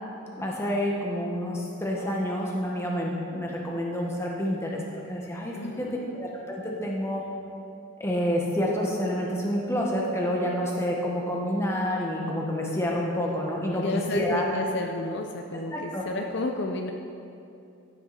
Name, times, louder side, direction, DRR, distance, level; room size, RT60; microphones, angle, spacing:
voice 1, 0.4-4.8 5.1-5.9 6.1-7.2 8.0-14.5 15.7-16.0, equal, 15° left, -2 dB, 1.5 m, -28 dB
voice 2, 5.5-6.2 13.7-16.9, left 2 dB, 55° left, 3 dB, 0.6 m, -32 dB
15.0 x 9.4 x 4.3 m, 2.6 s
head